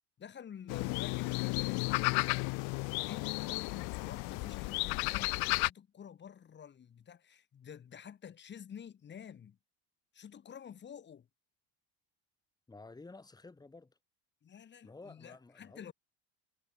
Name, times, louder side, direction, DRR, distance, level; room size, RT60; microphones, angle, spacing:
voice 1, 0.2-2.1 3.1-9.6 10.1-11.3 14.4-15.9, left 8 dB, 25° left, 7.9 m, -49 dB
sound 1, 0.7-5.7, left 30 dB, 65° left, 1.1 m, -33 dB
voice 2, 12.7-14.0 14.8-15.9, left 3 dB, 10° left, 5.8 m, -52 dB
cardioid pair, 170°, 40 cm